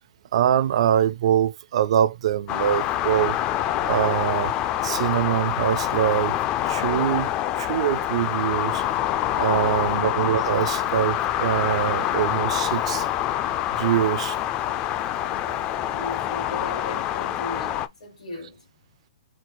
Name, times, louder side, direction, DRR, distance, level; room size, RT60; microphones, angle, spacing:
voice 1, 0.3-3.4 3.8-4.5 4.8-6.4 6.7-7.3 7.6-8.8 9.4-13.1 13.7-14.4, right 10 dB, 55° right, 0.4 m, -23 dB
sound 1, 2.5-17.9, left 12 dB, 25° left, 0.4 m, -26 dB
voice 2, 15.2-18.7, left 2 dB, 90° left, 2.3 m, -38 dB
4.5 x 2.1 x 4.3 m
hypercardioid pair, 155°, 4 cm